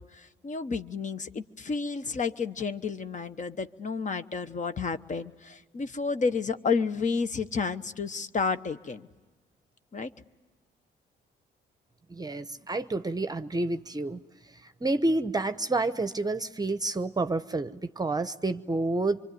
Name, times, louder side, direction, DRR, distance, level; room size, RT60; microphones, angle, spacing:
voice 1, 0.0-9.1 9.9-10.1, left 5 dB, 40° left, 11 dB, 1.1 m, -31 dB
voice 2, 12.1-14.2 14.6-19.2, right 2 dB, 20° right, 12 dB, 0.8 m, -29 dB
25.5 x 24.0 x 9.4 m, 1.2 s
cardioid pair, 90°, 20 cm